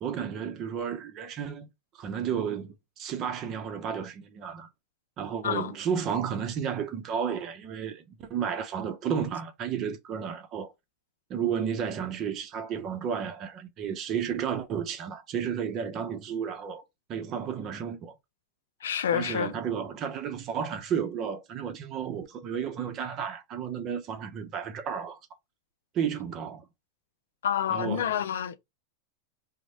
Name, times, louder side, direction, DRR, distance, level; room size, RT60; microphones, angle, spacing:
voice 1, 0.0-1.7 1.9-4.7 5.2-10.7 11.3-16.8 17.1-18.2 19.1-25.2 25.9-26.6 27.7-28.1, right 7 dB, 40° right, 0.7 m, -32 dB
voice 2, 18.8-19.5 27.4-28.6, left 9 dB, 90° left, 0.4 m, -28 dB
3.1 x 2.1 x 4.1 m
supercardioid pair, 125°, 0 cm